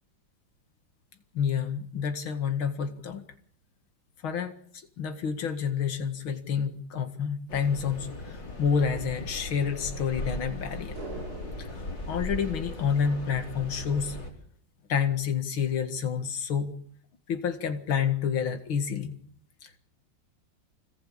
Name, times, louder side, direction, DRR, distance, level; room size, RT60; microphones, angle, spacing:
voice 1, 1.3-3.2 4.2-11.0 11.6-11.7 12.1-14.2 14.9-16.7 17.3-19.2 19.6-19.8, left 7 dB, 85° left, 7 dB, 2.7 m, -29 dB
sound 1, 7.5-14.3, left 1 dB, 60° left, 5.3 m, -38 dB
sound 2, 10.9-13.4 13.7-13.8, right 4 dB, 50° right, 3.5 m, -45 dB
26.5 x 20.0 x 8.8 m, 0.63 s
omnidirectional pair, 2.2 m